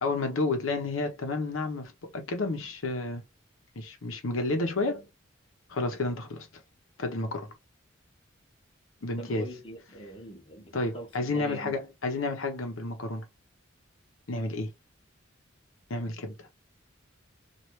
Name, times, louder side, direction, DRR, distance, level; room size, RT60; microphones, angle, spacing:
voice 1, 0.0-3.2 3.8-5.1 5.7-6.5 7.0-7.5 9.0-9.5 10.7-13.3 14.3-14.7 15.9-16.5, left 2 dB, 80° left, 0.8 m, -31 dB
voice 2, 9.2-11.8, right 1 dB, 25° left, 0.8 m, -43 dB
3.1 x 2.4 x 3.0 m
head